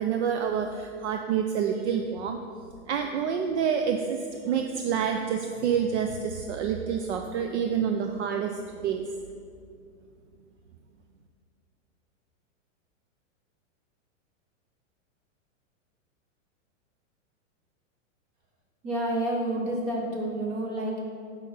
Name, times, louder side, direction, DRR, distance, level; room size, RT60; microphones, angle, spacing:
voice 1, 0.0-2.4 2.9-9.2, right 7 dB, 60° right, 5 dB, 0.5 m, -28 dB
voice 2, 18.8-21.0, right 1 dB, 25° right, -1 dB, 1.3 m, -29 dB
8.1 x 5.5 x 4.3 m, 2.3 s
supercardioid pair, 170°, 40 cm